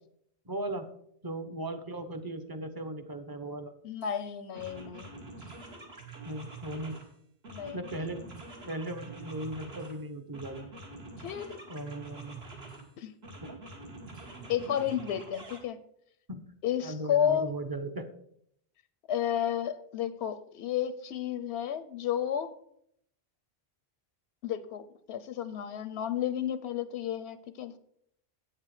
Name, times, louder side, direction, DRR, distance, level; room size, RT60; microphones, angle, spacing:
voice 1, 0.5-0.9 1.2-3.7 6.2-7.0 7.7-8.2 8.6-10.7 11.7-12.4 13.4-13.6 16.3-16.4 16.8-18.1, right 1 dB, 25° right, 8 dB, 0.7 m, -37 dB
voice 2, 3.8-5.1 7.5-7.8 11.2-11.6 13.0-13.1 14.5-15.8 16.6-17.5 19.1-22.5 24.4-27.8, left 9 dB, 85° left, 13 dB, 0.9 m, -32 dB
sound 1, 4.0-4.2 4.5-7.1 7.4-10.0 10.3-12.9 13.2-15.6, right 3 dB, 70° right, 1.9 m, -46 dB
8.4 x 7.6 x 4.8 m, 0.70 s
omnidirectional pair, 1.1 m